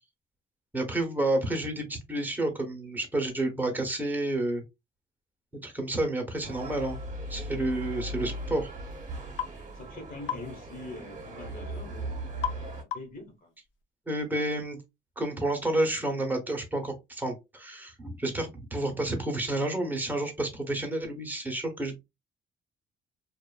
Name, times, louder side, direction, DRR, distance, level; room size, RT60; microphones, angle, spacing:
voice 1, 0.7-4.6 5.6-7.0 7.3-8.7 14.1-14.8 15.2-22.0, right 1 dB, 10° right, 2 dB, 0.9 m, -30 dB
sound 1, 6.4-12.8, right 1 dB, 40° right, 1.0 m, -38 dB
sound 2, 9.4-9.6 10.3-10.5 12.4-12.6 12.9-13.2, left 10 dB, 75° left, 0.4 m, -33 dB
voice 2, 9.7-12.1 12.5-12.7 12.9-13.5, left 2 dB, 45° left, 3 dB, 1.3 m, -43 dB
2.5 x 2.3 x 2.3 m, 0.22 s
cardioid pair, 90°, 20 cm